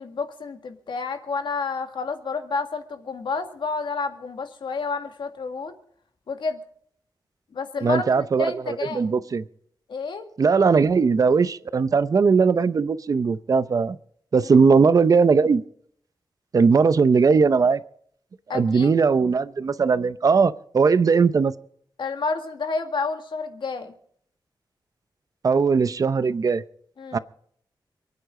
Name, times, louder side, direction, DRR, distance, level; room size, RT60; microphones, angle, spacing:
voice 1, 0.0-5.8 6.3-6.6 7.5-9.1 9.9-10.3 18.5-18.9 22.0-23.9 27.0-27.2, left 4 dB, 75° left, 2.1 m, -30 dB
voice 2, 7.8-9.4 10.4-14.0 14.3-15.6 16.5-17.8 18.5-21.5 25.4-26.6 27.1-27.2, right 5 dB, 45° right, 0.7 m, -19 dB
28.0 x 9.7 x 3.8 m
wide cardioid pair, 170°, 8 cm